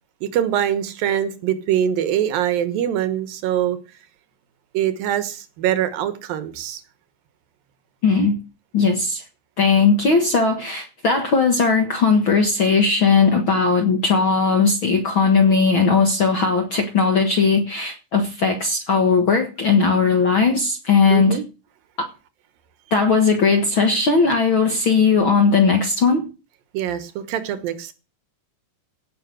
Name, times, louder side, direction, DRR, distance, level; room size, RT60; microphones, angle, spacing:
voice 1, 0.2-3.8 4.7-6.8 21.1-21.4 26.7-27.9, right 10 dB, 90° right, 3.1 m, -23 dB
voice 2, 8.0-8.4 8.7-9.2 9.6-21.4 22.0-22.1 22.9-26.3, left 4 dB, 50° left, 1.7 m, -18 dB
16.5 x 6.1 x 7.7 m
omnidirectional pair, 3.9 m